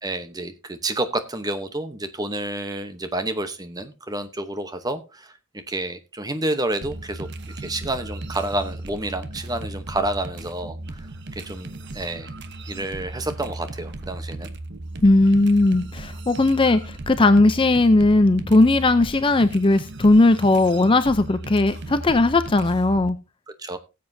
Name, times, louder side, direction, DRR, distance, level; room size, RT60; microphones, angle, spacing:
voice 1, 0.0-7.3 7.6-11.1 11.3-12.3 12.7-14.5 23.6-23.8, right 2 dB, 15° right, 0.9 m, -29 dB
sound 1, 6.8-23.1, right 2 dB, 50° right, 0.9 m, -36 dB
voice 2, 15.0-16.8 17.1-23.2, left 2 dB, 25° left, 0.5 m, -17 dB
18.0 x 7.7 x 2.7 m
head